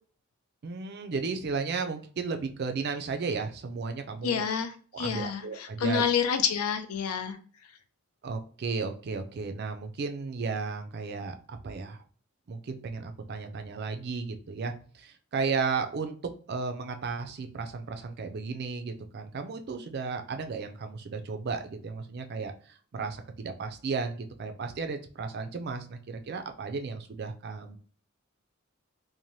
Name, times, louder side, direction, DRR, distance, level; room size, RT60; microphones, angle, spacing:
voice 1, 0.6-4.5 4.9-6.0 8.2-12.0 12.5-16.2 16.5-27.8, right 4 dB, 50° right, 0.4 m, -34 dB
voice 2, 4.2-7.4, left 7 dB, 90° left, 0.4 m, -28 dB
2.6 x 2.1 x 3.0 m
head